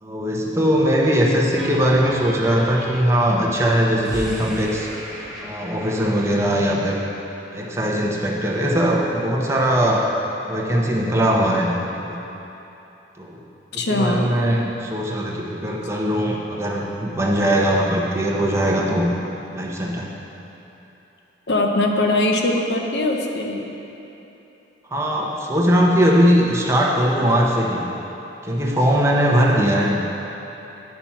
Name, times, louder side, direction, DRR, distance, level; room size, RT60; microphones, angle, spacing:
voice 1, 0.0-4.9 5.4-7.0 7.5-10.1 10.5-11.7 12.0-12.2 13.2-13.4 13.7-19.1 19.5-20.1 24.9-27.8 28.4-30.0, equal, 15° right, -2 dB, 0.9 m, -20 dB
sound 1, 1.0-7.2, equal, ahead, 1.1 m, -37 dB
voice 2, 13.7-14.3 21.5-23.7, left 2 dB, 75° left, 2 dB, 0.8 m, -21 dB
8.7 x 5.9 x 5.8 m, 3.0 s
head